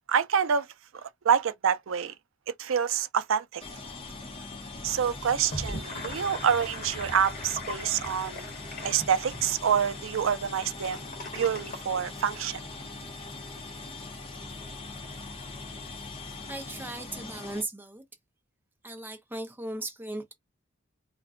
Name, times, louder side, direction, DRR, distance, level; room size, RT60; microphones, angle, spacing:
voice 1, 0.1-0.7 0.9-2.1 2.6-3.6 4.8-8.5 8.8-11.1 11.3-12.6, right 7 dB, 80° right, 0.4 m, -27 dB
sound 1, 3.6-17.6, left 3 dB, 30° left, 0.8 m, -41 dB
Gurgling / Sink (filling or washing), 5.3-12.8, left 1 dB, 45° left, 1.1 m, -41 dB
voice 2, 16.5-18.0 18.8-20.3, right 2 dB, 10° right, 0.6 m, -37 dB
2.5 x 2.2 x 3.6 m
head